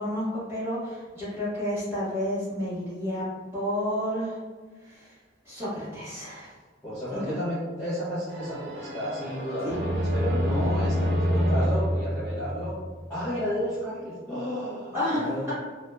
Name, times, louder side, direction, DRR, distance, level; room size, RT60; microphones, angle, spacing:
voice 1, 0.0-3.2 3.5-4.4 4.8-5.2 5.4-6.5 7.2-7.3 14.9-15.5, equal, 10° right, -11 dB, 1.3 m, -30 dB
voice 2, 6.8-12.8 13.1-15.4, equal, 10° left, -13 dB, 0.8 m, -32 dB
sound 1, 8.3-13.1, equal, 60° right, 0.6 m, -27 dB
2.9 x 2.4 x 2.3 m, 1.4 s
head